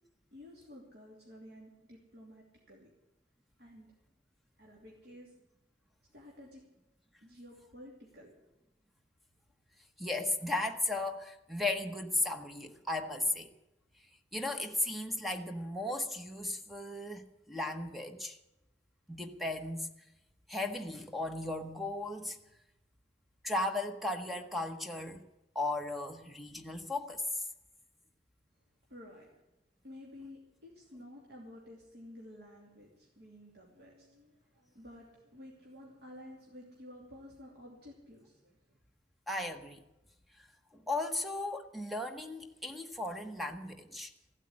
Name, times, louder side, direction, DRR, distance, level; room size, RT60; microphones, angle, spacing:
voice 1, 0.3-2.9 3.6-3.9 4.6-5.3 6.1-6.6 7.2-8.3 28.9-29.4 29.8-38.8, left 1 dB, 65° right, -3 dB, 2.9 m, -52 dB
voice 2, 10.0-13.5 14.3-18.4 19.1-19.9 20.5-22.4 23.4-25.2 25.5-27.2 39.3-39.8 40.7-44.1, left 2 dB, ahead, 6 dB, 1.0 m, -36 dB
15.0 x 8.3 x 9.8 m, 0.96 s
head